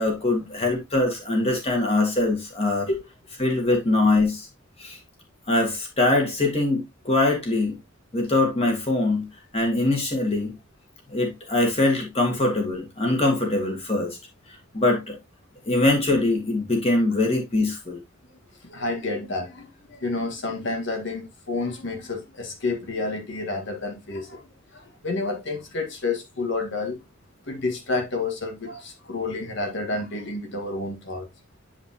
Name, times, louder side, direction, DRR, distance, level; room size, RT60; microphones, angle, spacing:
voice 1, 0.0-2.9 3.4-4.5 4.8-5.0 5.5-7.8 8.1-9.3 9.5-10.5 11.1-14.2 14.7-15.2 15.6-18.0, left 2 dB, 30° left, 2.2 m, -23 dB
voice 2, 18.6-27.0 27.5-31.3, left 3 dB, 60° left, 1.7 m, -30 dB
8.2 x 5.0 x 2.9 m
head